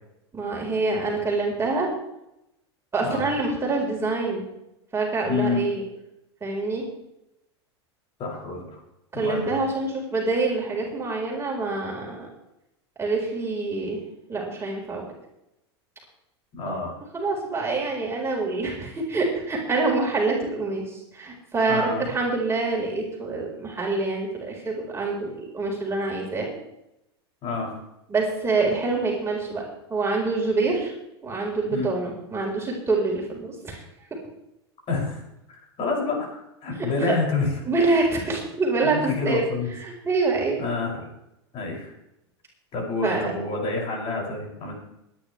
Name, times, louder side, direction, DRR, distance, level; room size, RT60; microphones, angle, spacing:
voice 1, 0.3-1.9 2.9-4.4 4.9-5.8 6.4-6.8 9.1-12.3 13.0-14.0 14.3-15.0 16.6-16.8 17.1-26.5 28.1-29.6 29.9-30.9 31.2-33.8 37.1-37.2 37.7-39.5 39.8-40.6 43.0-43.3, right 3 dB, 20° right, -2 dB, 4.6 m, -26 dB
voice 2, 5.2-5.6 8.2-8.8 9.1-9.6 16.5-17.0 21.7-22.0 27.4-27.8 31.7-31.9 34.9-35.2 35.5-37.5 38.8-39.7 40.6-41.1 41.5-41.9 42.7-44.7, left 3 dB, 45° left, -1 dB, 6.7 m, -28 dB
22.0 x 10.5 x 3.3 m, 0.86 s
hypercardioid pair, 95°, 14 cm